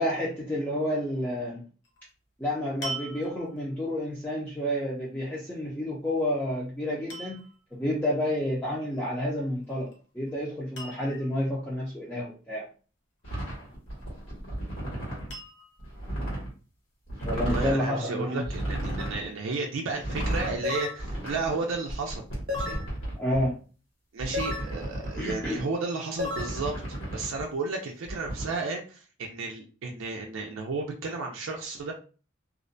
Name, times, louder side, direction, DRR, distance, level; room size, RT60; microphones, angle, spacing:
voice 1, 0.0-1.6 2.4-7.4 7.7-9.9 10.1-12.6 17.2-18.5 23.2-23.6 25.2-25.6, left 1 dB, 10° left, -6 dB, 0.4 m, -30 dB
sound 1, 1.8-2.1 2.8-3.7 6.1-6.5 7.1-7.6 9.6-10.0 10.3-10.4 10.8-11.4 13.7-14.3 15.3-15.9 16.7-16.8, right 2 dB, 60° left, 0.6 m, -41 dB
sound 2, 13.2-15.3 15.8-16.5 17.1-17.8 18.4-19.2 19.9-20.6 21.0-23.4 24.2-25.6 26.2-27.4 28.1-28.4, right 1 dB, 75° left, 1.3 m, -34 dB
voice 2, 17.4-22.2 22.5-22.8 24.1-26.7 27.1-31.9, right 3 dB, 80° right, 1 dB, 0.4 m, -33 dB
sound 3, 19.0-19.2 20.6-21.0 22.5-22.9 24.3-24.7 26.2-26.5, left 3 dB, 50° right, 0.7 m, -32 dB
2.4 x 2.1 x 2.5 m, 0.36 s
head